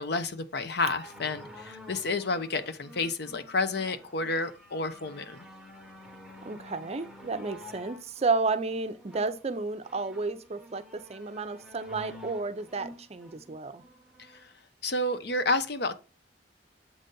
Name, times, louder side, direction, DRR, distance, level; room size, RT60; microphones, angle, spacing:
voice 1, 0.0-5.5 14.2-14.5 14.8-15.9, left 2 dB, 65° left, 0.7 m, -30 dB
sound 1, 0.9-14.5 15.2-15.3, equal, 5° right, 1.1 m, -50 dB
voice 2, 6.4-13.8, right 3 dB, 35° right, 0.6 m, -32 dB
7.6 x 4.0 x 3.8 m
head